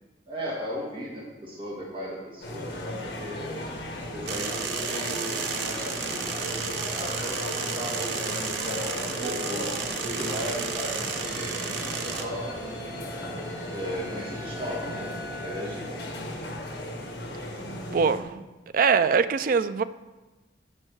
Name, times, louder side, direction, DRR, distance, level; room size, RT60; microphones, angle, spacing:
voice 1, 0.3-3.6 4.1-12.5 13.7-15.1 15.4-15.9, equal, 30° right, -4 dB, 1.6 m, -36 dB
sound 1, 2.4-18.2, left 1 dB, 65° left, 1.5 m, -36 dB
sound 2, 4.3-12.2, right 6 dB, 75° right, 0.7 m, -33 dB
sound 3, 11.2-16.6, equal, 10° right, 2.2 m, -44 dB
voice 2, 17.9-18.4 18.7-19.8, right 5 dB, 50° right, 13 dB, 0.4 m, -23 dB
7.6 x 5.5 x 6.4 m, 1.2 s
head